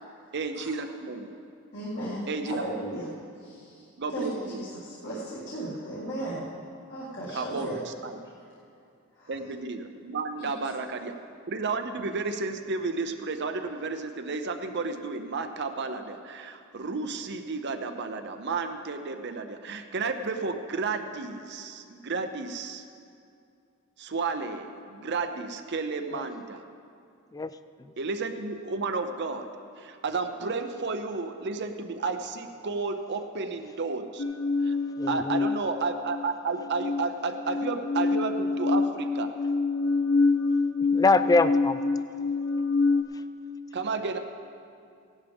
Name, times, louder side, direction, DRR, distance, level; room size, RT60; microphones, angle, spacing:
voice 1, 0.3-1.3 2.3-2.6 4.0-4.6 7.3-8.2 9.3-11.1 11.5-22.8 24.0-26.6 28.0-29.5 29.8-34.2 34.7-34.8 35.1-39.3 43.7-44.2, right 4 dB, 50° right, 7 dB, 0.7 m, -32 dB
voice 2, 1.7-3.1 3.4-3.8 4.1-6.4 6.9-7.8 9.1-9.4 10.4-10.5, right 1 dB, 50° left, -8 dB, 2.1 m, -36 dB
voice 3, 27.3-27.9 35.0-35.5 40.9-41.8 43.1-43.2, left 3 dB, 15° left, 13 dB, 0.3 m, -25 dB
sound 1, 34.2-36.3 36.6-43.0, left 3 dB, 75° left, 0.9 m, -26 dB
17.0 x 11.5 x 3.6 m, 2.4 s
head